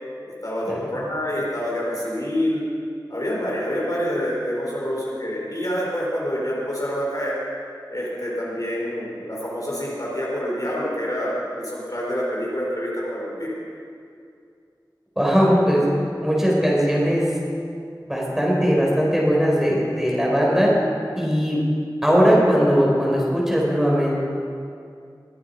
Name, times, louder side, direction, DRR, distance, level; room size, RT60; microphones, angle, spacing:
voice 1, 0.2-2.6 3.1-7.4 7.9-13.5, equal, 50° left, -5 dB, 4.2 m, -27 dB
voice 2, 15.2-15.8 16.2-17.3 18.0-20.7 21.1-21.6 22.0-24.2, equal, 5° right, -4 dB, 4.2 m, -19 dB
21.5 x 8.7 x 5.3 m, 2.4 s
wide cardioid pair, 40°, 8 cm